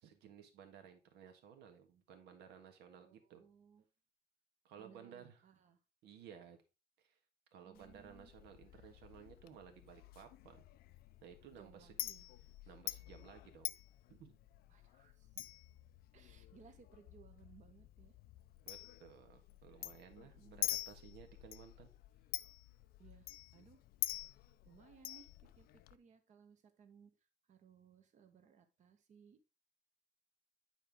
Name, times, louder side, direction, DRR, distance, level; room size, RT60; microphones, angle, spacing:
voice 1, 0.0-3.4 4.6-5.4 6.0-6.6 7.0-7.1 7.5-10.6 11.2-12.0 12.7-13.7 14.1-14.4 15.3-15.5 18.7-21.9, right 8 dB, 80° right, 6 dB, 1.6 m, -57 dB
voice 2, 3.0-3.8 4.8-5.8 7.6-8.3 11.5-12.2 14.7-15.4 16.1-18.2 20.1-20.6 23.0-23.8 24.6-27.1 27.5-29.4, right 7 dB, 45° right, 8 dB, 1.2 m, -63 dB
Chink clink, 7.7-26.0, left 15 dB, 65° left, 0.4 m, -47 dB
9.0 x 4.5 x 3.6 m, 0.29 s
cardioid pair, 155°, 17 cm